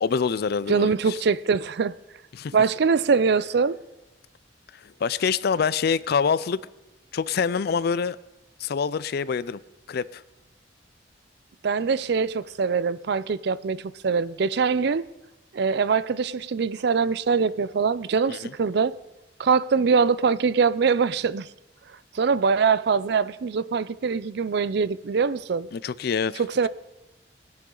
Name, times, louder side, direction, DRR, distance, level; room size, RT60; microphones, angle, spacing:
voice 1, 0.0-1.2 2.3-2.5 4.8-6.6 7.1-8.2 8.6-9.6 9.9-10.2 18.3-18.5 25.7-26.4, left 6 dB, 60° left, 0.4 m, -25 dB
voice 2, 0.7-2.0 2.5-3.8 11.6-15.1 15.5-19.0 19.4-21.5 22.1-25.7 26.4-26.7, right 5 dB, 65° right, 0.4 m, -23 dB
19.0 x 10.5 x 3.9 m
head